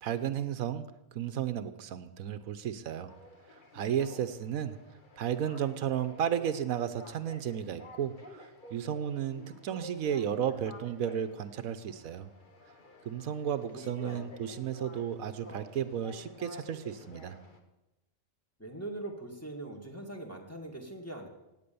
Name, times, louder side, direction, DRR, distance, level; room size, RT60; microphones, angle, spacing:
voice 1, 0.0-0.9 1.1-3.1 3.5-4.8 5.2-12.3 13.0-17.4, right 9 dB, 85° right, 12 dB, 1.2 m, -33 dB
sound 1, 3.1-17.6, left 2 dB, 35° left, 1.6 m, -52 dB
voice 2, 13.4-14.3 18.6-21.3, right 2 dB, 10° left, 1 dB, 2.0 m, -42 dB
16.5 x 9.1 x 6.9 m, 0.95 s
omnidirectional pair, 1.4 m